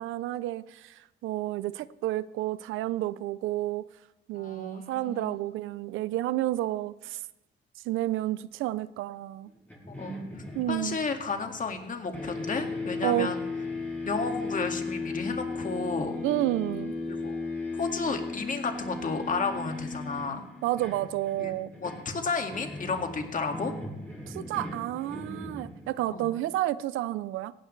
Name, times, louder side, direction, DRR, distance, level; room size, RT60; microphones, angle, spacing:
voice 1, 0.0-3.8 4.3-7.2 7.8-9.5 10.5-11.0 13.0-13.3 16.2-16.9 20.6-21.7 24.3-27.5, right 15 dB, 90° right, 17 dB, 0.5 m, -30 dB
voice 2, 4.3-5.4 9.9-10.2 10.6-13.4 14.1-16.2 17.1-17.4 17.7-20.4 21.4-21.5 21.8-23.7 26.1-26.3, left 4 dB, 40° left, 5 dB, 2.0 m, -32 dB
sound 1, 9.7-11.9 12.1-26.1, left 3 dB, 10° left, 6.2 m, -36 dB
17.5 x 16.0 x 3.2 m, 0.98 s
cardioid pair, 90°, 20 cm